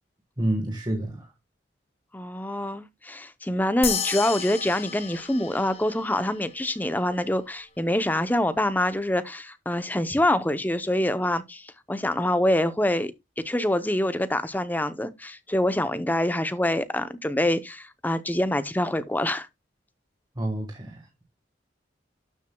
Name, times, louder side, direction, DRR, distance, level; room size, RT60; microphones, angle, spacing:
voice 1, 0.4-1.3 20.3-21.2, right 1 dB, 25° right, 1.6 m, -29 dB
voice 2, 2.1-19.5, left 1 dB, 10° left, 0.7 m, -25 dB
sound 1, 3.8-6.6, left 7 dB, 35° left, 1.4 m, -33 dB
12.0 x 7.4 x 2.3 m
head